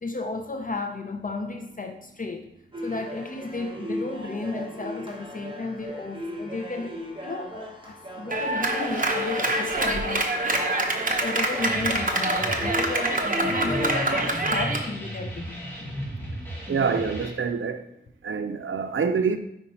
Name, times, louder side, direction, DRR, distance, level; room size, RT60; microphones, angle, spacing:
voice 1, 0.0-2.5 2.8-10.4 11.2-15.6, left 3 dB, 40° left, 5 dB, 0.6 m, -33 dB
sound 1, 2.7-14.2, equal, 25° right, 1.2 m, -36 dB
Clapping, 8.3-14.9, right 2 dB, 40° right, 0.8 m, -26 dB
sound 2, 11.6-17.3, equal, 10° left, 1.7 m, -35 dB
voice 2, 16.7-17.9 18.2-19.4, right 5 dB, 75° right, 8 dB, 0.5 m, -26 dB
5.4 x 4.8 x 4.2 m, 0.77 s
wide cardioid pair, 90°, 21 cm